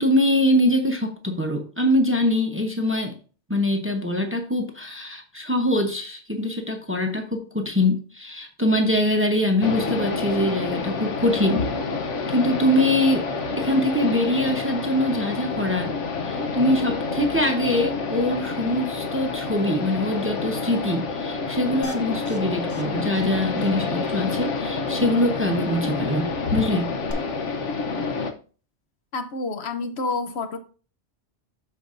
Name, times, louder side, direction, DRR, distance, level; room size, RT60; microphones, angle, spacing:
voice 1, 0.0-3.2 3.5-11.7 12.3-13.3 13.6-16.0 16.2-26.9, left 1 dB, 15° right, 4 dB, 0.8 m, -23 dB
sound 1, 9.6-28.3, left 4 dB, 90° left, 1.2 m, -28 dB
sound 2, 21.8-22.4 22.7-22.8 23.1-23.3 23.6-23.7 27.1-27.2, equal, 15° left, 0.9 m, -36 dB
voice 2, 29.1-30.6, left 3 dB, 70° left, 9 dB, 1.0 m, -28 dB
13.0 x 4.6 x 2.6 m, 0.38 s
omnidirectional pair, 1.2 m